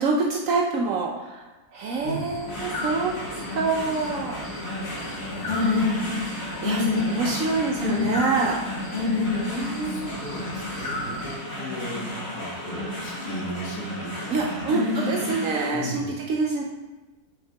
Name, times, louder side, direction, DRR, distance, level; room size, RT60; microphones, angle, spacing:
voice 1, 0.0-4.4 4.7-4.8 6.6-8.6 9.3-10.2 14.3-16.6, right 4 dB, 70° right, 0 dB, 0.9 m, -27 dB
sound 1, 1.9-11.4, equal, 40° left, 2.8 m, -37 dB
sound 2, 2.5-15.7, left 3 dB, 65° left, 2.5 m, -29 dB
voice 2, 5.1-5.7 6.8-7.6 7.9-8.1 9.8-14.7 15.1-15.3 15.7-16.1, equal, 80° left, -1 dB, 1.7 m, -37 dB
6.6 x 5.6 x 3.4 m, 1.1 s
omnidirectional pair, 1.6 m